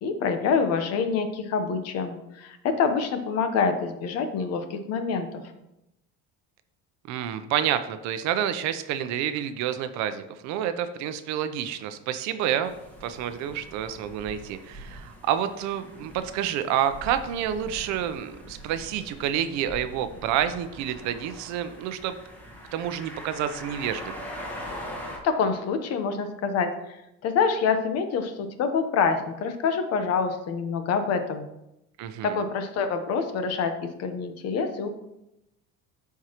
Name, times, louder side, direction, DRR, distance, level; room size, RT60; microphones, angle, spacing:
voice 1, 0.0-5.4 25.2-27.0 27.2-31.4 32.2-33.7 34.0-34.9, left 5 dB, 55° left, 7 dB, 1.0 m, -26 dB
voice 2, 7.1-12.7 13.0-22.2 22.7-24.1 32.0-32.4, right 10 dB, 65° right, 11 dB, 0.7 m, -29 dB
sound 1, 12.6-25.2, equal, 5° left, 1.5 m, -42 dB
13.0 x 4.7 x 3.0 m, 0.88 s
cardioid pair, 150°, 30 cm